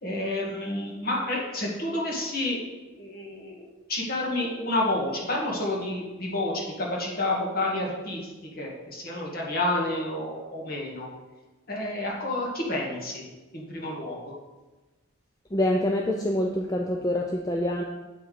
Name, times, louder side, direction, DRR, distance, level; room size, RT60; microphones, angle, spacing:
voice 1, 0.0-2.6 2.9-11.1 11.7-13.2 13.5-14.3, left 1 dB, 45° left, -2 dB, 1.9 m, -30 dB
voice 2, 15.5-17.8, left 1 dB, 15° left, 1 dB, 0.5 m, -26 dB
8.2 x 6.1 x 5.1 m, 1.1 s
head